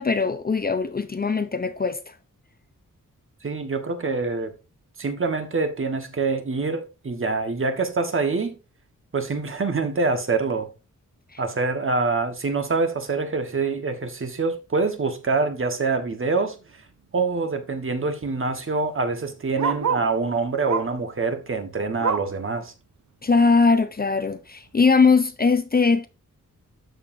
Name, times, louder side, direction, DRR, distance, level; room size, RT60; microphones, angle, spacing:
voice 1, 0.0-2.0 11.3-11.4 23.2-26.1, left 4 dB, 30° left, 0.6 m, -20 dB
voice 2, 3.4-4.5 5.0-8.6 9.1-10.7 11.4-16.6 17.1-22.7, right 4 dB, 40° right, 1.3 m, -25 dB
Bark, 16.4-16.7 17.0-17.1 17.3-20.2 20.6-21.1 21.4-22.4 22.9-23.0 23.4-23.5 24.2-24.3, right 6 dB, 60° right, 0.9 m, -30 dB
13.0 x 5.1 x 2.6 m
wide cardioid pair, 140°, 32 cm